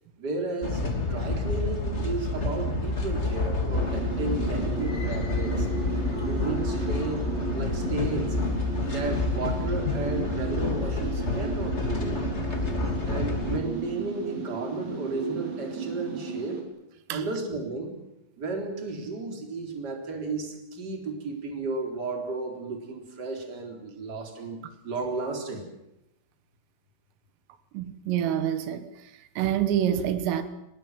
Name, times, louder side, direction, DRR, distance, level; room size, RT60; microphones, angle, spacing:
voice 1, 0.2-5.7 6.1-8.4 8.9-12.3 13.1-16.6 17.1-18.0 18.4-25.6, right 3 dB, 20° right, 3.7 m, -33 dB
sound 1, 0.6-13.6, left 3 dB, 25° left, 1.6 m, -29 dB
sound 2, 3.7-16.6, right 4 dB, 45° right, 5.0 m, -35 dB
voice 2, 27.7-28.9 29.4-30.4, right 10 dB, 85° right, 4.0 m, -26 dB
25.5 x 20.0 x 7.5 m
omnidirectional pair, 5.7 m